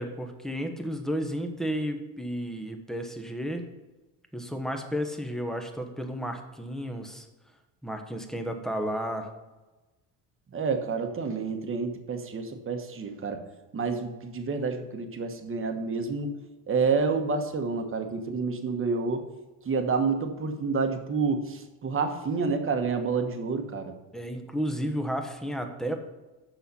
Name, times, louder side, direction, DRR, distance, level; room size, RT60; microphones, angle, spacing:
voice 1, 0.0-3.6 4.3-7.3 7.8-9.3 24.1-25.9, equal, ahead, 5 dB, 1.0 m, -32 dB
voice 2, 10.5-13.4 13.7-16.3 16.7-19.2 19.6-23.9, right 4 dB, 35° right, 6 dB, 1.2 m, -29 dB
7.0 x 5.7 x 5.3 m, 1.1 s
supercardioid pair, 95°, 39 cm